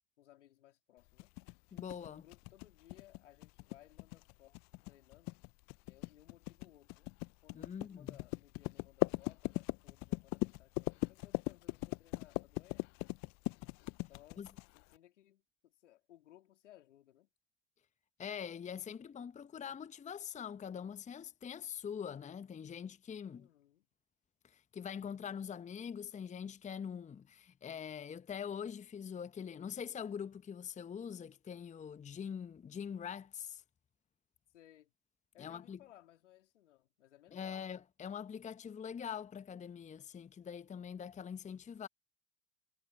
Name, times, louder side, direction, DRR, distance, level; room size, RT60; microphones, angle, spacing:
voice 1, 0.0-1.3 2.0-4.6 4.9-5.4 5.9-7.1 7.4-13.0 14.1-14.5 14.7-17.3 23.3-23.9 34.5-34.9 35.3-37.7, left 13 dB, 75° left, 3.4 m, -62 dB
sound 1, 1.2-14.9, left 25 dB, 50° left, 0.8 m, -39 dB
voice 2, 1.7-2.2 7.5-8.2 14.4-14.5 18.2-23.5 24.4-33.6 35.4-35.8 37.3-41.9, left 7 dB, 20° left, 0.9 m, -44 dB
hypercardioid pair, 75°, 36 cm